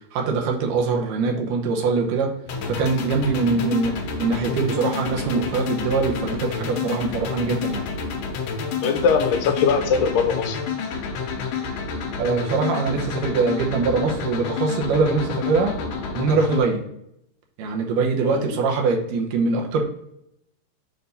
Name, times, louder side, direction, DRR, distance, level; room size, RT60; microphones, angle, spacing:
voice 1, 0.1-2.3 2.7-7.9 12.2-15.7 16.2-16.8 17.6-19.8, right 4 dB, 75° right, 1 dB, 2.4 m, -23 dB
sound 1, 2.5-16.6, left 5 dB, 70° left, 2.2 m, -29 dB
voice 2, 8.8-10.6 18.2-18.5, left 6 dB, 85° left, 7 dB, 2.3 m, -21 dB
6.9 x 2.6 x 5.3 m, 0.76 s
omnidirectional pair, 4.0 m